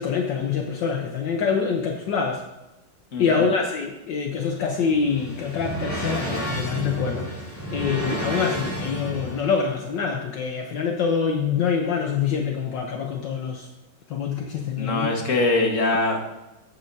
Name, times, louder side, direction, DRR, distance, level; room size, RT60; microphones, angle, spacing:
voice 1, 0.0-2.4 3.2-7.3 7.7-13.7 14.1-15.1, left 6 dB, 70° left, 2 dB, 1.5 m, -25 dB
voice 2, 3.1-3.4 14.8-16.3, left 2 dB, 40° left, 2 dB, 1.8 m, -23 dB
sound 1, 4.6-9.6, equal, 10° left, 3.6 m, -31 dB
13.5 x 8.6 x 2.7 m, 1.0 s
omnidirectional pair, 2.1 m